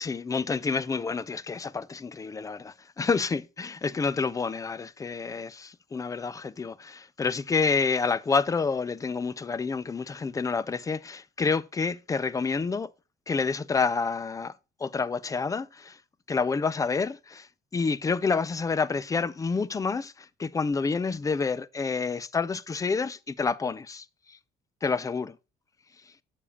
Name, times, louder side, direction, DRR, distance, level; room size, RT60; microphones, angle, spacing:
voice 1, 0.0-12.9 13.3-14.5 14.8-16.0 16.3-17.5 17.7-24.4 24.8-25.4, left 4 dB, 20° left, 0.5 m, -28 dB
8.5 x 7.0 x 2.9 m
cardioid pair, 110°, 17 cm